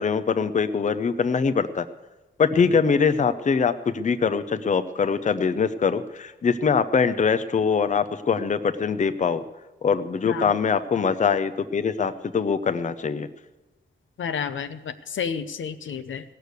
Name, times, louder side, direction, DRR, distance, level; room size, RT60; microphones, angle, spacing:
voice 1, 0.0-1.8 2.4-9.4 9.8-13.3, left 5 dB, 40° left, 10 dB, 0.6 m, -23 dB
voice 2, 14.2-16.2, left 7 dB, 85° left, 9 dB, 0.8 m, -31 dB
17.0 x 6.6 x 8.0 m, 1.1 s
wide cardioid pair, 110°, 20 cm